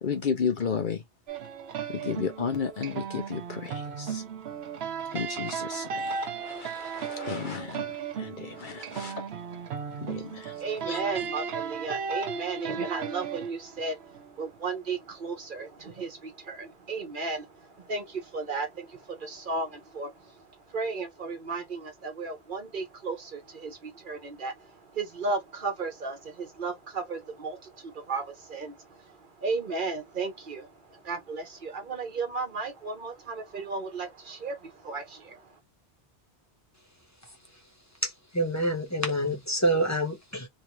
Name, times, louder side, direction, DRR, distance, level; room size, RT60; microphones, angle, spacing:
voice 1, 0.0-1.0 1.9-4.2 5.1-9.3 10.0-10.5 10.9-11.0, left 6 dB, 55° left, 0.8 m, -33 dB
sound 1, 1.3-14.5, right 6 dB, 75° right, 0.9 m, -36 dB
voice 2, 10.6-35.5, right 4 dB, 55° right, 1.0 m, -35 dB
voice 3, 38.0-40.5, right 1 dB, 15° left, 0.9 m, -27 dB
3.1 x 2.5 x 2.9 m
omnidirectional pair, 1.1 m